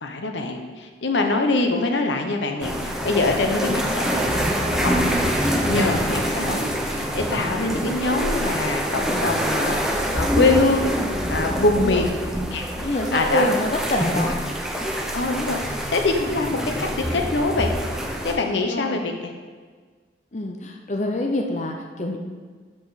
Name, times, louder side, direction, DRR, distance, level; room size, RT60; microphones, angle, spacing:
voice 1, 0.0-4.4 4.7-5.2 5.7-10.9 11.3-12.1 12.5-13.4 15.1-17.7 18.2-19.3, left 3 dB, 85° left, 4 dB, 0.9 m, -24 dB
sound 1, 2.6-18.4, equal, 5° right, 0.7 m, -25 dB
voice 2, 11.5-12.1 12.8-14.3 18.7-19.0 20.3-22.2, left 1 dB, 40° left, 2 dB, 0.7 m, -26 dB
13.0 x 5.0 x 4.1 m, 1.5 s
head